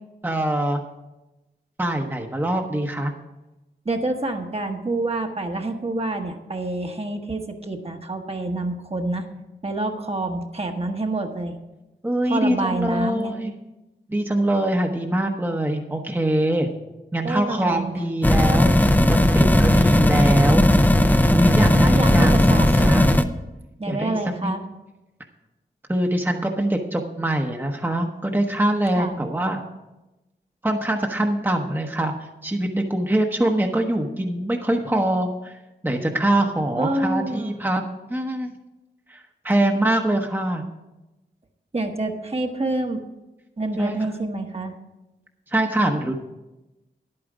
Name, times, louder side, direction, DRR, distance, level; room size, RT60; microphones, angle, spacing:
voice 1, 0.2-0.8 1.8-3.1 12.0-13.5 14.1-16.7 17.1-20.7 21.3-23.1 23.9-24.5 25.9-29.6 30.6-32.1 32.4-35.6 35.8-37.8 38.1-38.5 39.1-40.6 43.8-44.1 45.5-46.1, right 1 dB, 10° right, 2 dB, 0.9 m, -23 dB
voice 2, 3.8-9.3 9.6-11.6 12.2-13.3 17.2-17.9 21.7-23.1 23.8-24.6 29.0-29.2 36.8-37.5 41.7-43.0 43.6-44.8, right 2 dB, 30° right, 4 dB, 1.1 m, -27 dB
sound 1, 18.2-23.2, left 1 dB, 10° left, 0.6 m, -16 dB
10.5 x 8.8 x 4.9 m, 1.0 s
cardioid pair, 55°, 19 cm